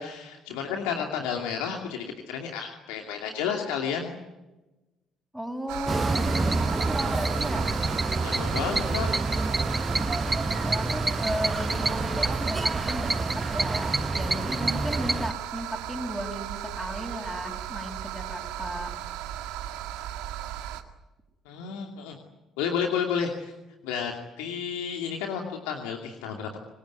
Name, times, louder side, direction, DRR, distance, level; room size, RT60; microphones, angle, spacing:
voice 1, 0.0-4.1 8.1-9.1 21.5-22.2 22.6-23.5 23.8-26.6, left 7 dB, 85° left, 3 dB, 2.6 m, -31 dB
voice 2, 5.3-7.7 10.6-18.9, equal, 5° right, -2 dB, 5.6 m, -35 dB
sound 1, 5.7-20.8, right 12 dB, 80° right, 1.9 m, -36 dB
sound 2, 5.9-15.3, right 2 dB, 20° right, 1.1 m, -27 dB
26.5 x 20.0 x 9.5 m, 1.1 s
hypercardioid pair, 55°, 0 cm